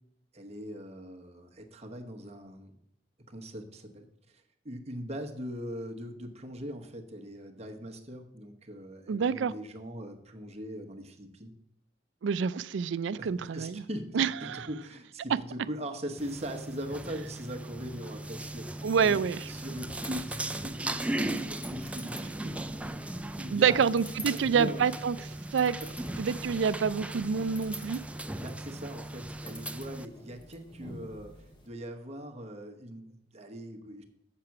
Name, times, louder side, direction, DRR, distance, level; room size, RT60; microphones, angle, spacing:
voice 1, 0.3-2.7 3.3-11.5 13.2-22.6 23.0-23.9 24.2-24.8 28.4-34.0, equal, 35° right, 1.1 m, -41 dB
voice 2, 9.1-9.5 12.2-13.8 14.1-14.7 18.8-19.4 23.5-25.2 25.5-25.8 26.2-28.0, right 6 dB, 90° right, 0.4 m, -27 dB
sound 1, 16.2-30.1, right 1 dB, 5° right, 0.4 m, -38 dB
sound 2, 19.2-31.7, left 1 dB, 25° left, 1.5 m, -50 dB
7.5 x 6.7 x 5.8 m
head